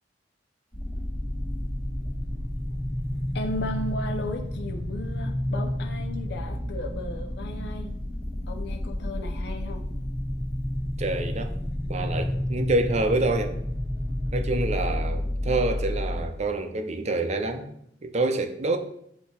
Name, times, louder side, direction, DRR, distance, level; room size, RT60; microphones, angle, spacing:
sound 1, 0.7-16.3, left 1 dB, 40° left, 1.5 m, -30 dB
voice 1, 3.3-7.9 8.5-9.9, left 1 dB, 65° left, 0.5 m, -35 dB
voice 2, 11.0-11.5 11.9-13.6 14.3-17.7 18.0-18.8, right 2 dB, 40° right, 0.6 m, -27 dB
8.4 x 2.8 x 4.3 m
head